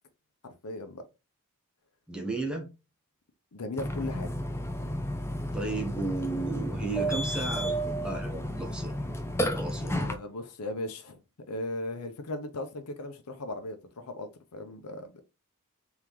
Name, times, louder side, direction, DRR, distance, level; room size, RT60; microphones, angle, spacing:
voice 1, 0.4-1.0 3.5-4.3 9.8-11.2 11.5-15.2, left 2 dB, 90° left, 0.7 m, -37 dB
voice 2, 2.1-2.7 5.5-8.9 9.5-10.0, right 3 dB, 5° right, 1.0 m, -34 dB
Burping eructation, 3.8-10.1, equal, 10° left, 0.5 m, -32 dB
3.7 x 3.6 x 3.0 m
head